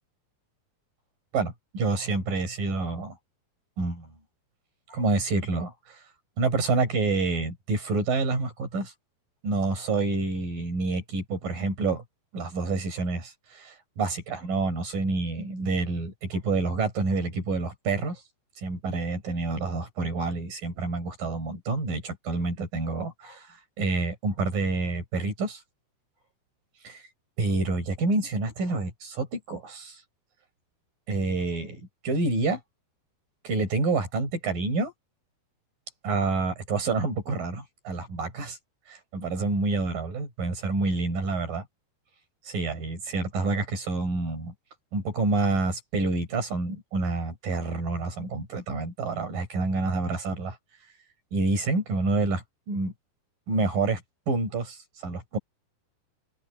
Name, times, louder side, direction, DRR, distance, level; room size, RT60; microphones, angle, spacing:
voice 1, 1.3-3.2 3.8-4.1 4.9-6.0 6.4-8.9 9.4-12.0 12.3-18.2 18.6-25.6 26.8-27.0 27.4-30.0 31.1-32.6 33.4-34.9 36.0-38.6 38.9-41.6 42.5-44.5 44.9-50.6 51.3-52.9 53.5-54.0 54.3-55.4, right 3 dB, 55° right, 7.1 m, -28 dB
open air
omnidirectional pair, 4.9 m